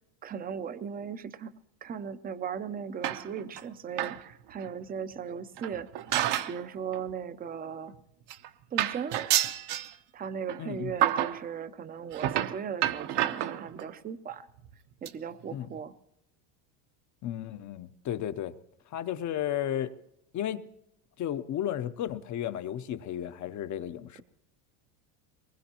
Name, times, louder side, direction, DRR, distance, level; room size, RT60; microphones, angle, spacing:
voice 1, 0.2-1.5 1.8-5.9 6.5-7.9 8.7-9.2 10.1-14.5 15.0-15.9, right 7 dB, 20° right, 0.5 m, -37 dB
sound 1, 3.0-3.6 3.9-4.2 4.6-4.7 5.6-6.6 6.9-7.1 7.9-8.0 8.3-8.5 8.8-9.9 10.5-10.6 11.0-11.4 12.1-13.9 14.6-14.7 15.1-15.2 15.5-15.6 15.8-15.9, right 12 dB, 55° right, 0.9 m, -29 dB
voice 2, 10.6-10.9 15.5-15.7 17.2-18.5 18.9-19.9 20.3-20.6 21.2-24.2, left 11 dB, 35° left, 0.7 m, -33 dB
22.5 x 20.5 x 2.9 m
supercardioid pair, 120°, 49 cm